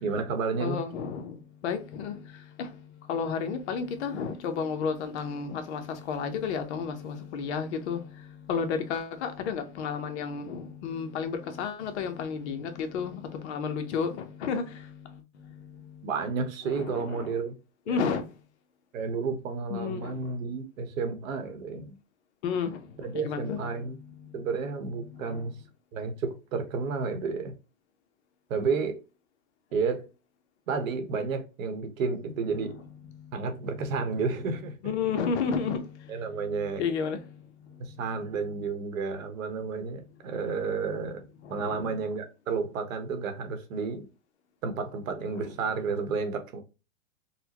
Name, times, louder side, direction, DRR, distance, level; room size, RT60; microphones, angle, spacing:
voice 1, 0.0-0.8 16.0-17.6 17.9-18.1 18.9-22.0 23.0-24.0 24.3-25.6 25.9-27.5 28.5-29.0 29.7-30.1 30.7-32.8 33.3-34.7 36.1-36.8 37.8-44.1 44.6-46.6, right 5 dB, 70° right, 1.0 m, -31 dB
voice 2, 0.6-1.4 1.6-2.2 2.6-2.7 3.1-8.0 8.5-14.9 16.7-17.4 17.9-18.2 19.7-20.2 22.4-22.8 23.1-23.8 25.2-25.4 34.8-35.8 36.8-37.2 41.4-41.9 45.3-45.4, left 6 dB, 55° left, 0.8 m, -31 dB
4.1 x 2.2 x 2.9 m
supercardioid pair, 155°, 42 cm